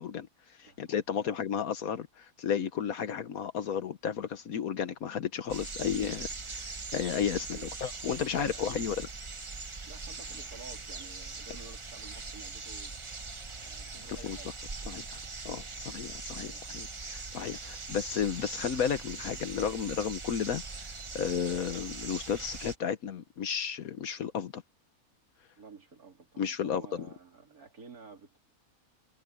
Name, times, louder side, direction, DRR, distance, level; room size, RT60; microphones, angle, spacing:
voice 1, 0.0-9.1 14.2-14.4 14.9-15.0 15.4-20.6 21.1-24.6 26.4-27.1, left 8 dB, 75° left, 1.4 m, -33 dB
voice 2, 0.6-1.4 7.5-7.8 8.3-8.9 9.8-13.0 13.5-14.6 14.8-15.0 15.8-16.1 16.4-16.8 25.6-28.4, right 4 dB, 85° right, 3.3 m, -51 dB
sound 1, 5.5-22.8, right 4 dB, 25° right, 0.8 m, -41 dB
omnidirectional pair, 1.5 m